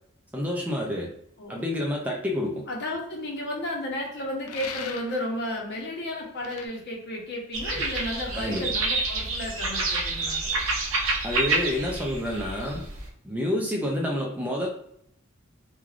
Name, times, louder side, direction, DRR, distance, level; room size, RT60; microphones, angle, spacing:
voice 1, 0.3-1.1 1.5-2.7 8.3-8.7 11.2-12.8 13.2-14.7, left 1 dB, 10° right, -1 dB, 0.3 m, -28 dB
voice 2, 2.7-10.4, left 1 dB, 50° left, -1 dB, 0.8 m, -33 dB
sound 1, 4.5-5.3 6.4-6.7, left 7 dB, 80° left, 0.4 m, -38 dB
sound 2, 7.5-13.1, right 3 dB, 65° right, 0.6 m, -28 dB
3.2 x 2.3 x 2.4 m, 0.70 s
head